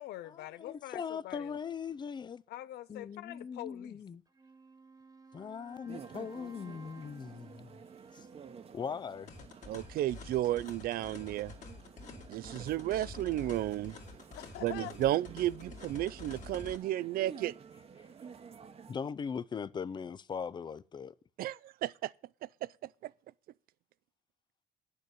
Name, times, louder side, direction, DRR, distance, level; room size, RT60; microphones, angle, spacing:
voice 1, 0.0-1.6 2.5-4.0 14.3-15.0, left 14 dB, 75° left, 0.6 m, -44 dB
voice 2, 0.6-2.4 2.9-4.2 5.3-7.8 8.1-8.3 8.7-9.3 18.9-21.1, left 6 dB, 25° left, 0.4 m, -40 dB
Wind instrument woodwind instrument, 4.3-9.2, right 3 dB, 20° right, 1.4 m, -57 dB
sound 1, 5.9-18.9, right 6 dB, 35° right, 1.0 m, -51 dB
sound 2, 9.3-16.8, left 4 dB, 45° left, 2.1 m, -48 dB
voice 3, 9.7-11.5 12.3-13.9 14.6-17.5 21.4-22.1 22.6-22.7, right 14 dB, 60° right, 0.4 m, -33 dB
8.9 x 6.6 x 6.9 m
cardioid pair, 110°, 17 cm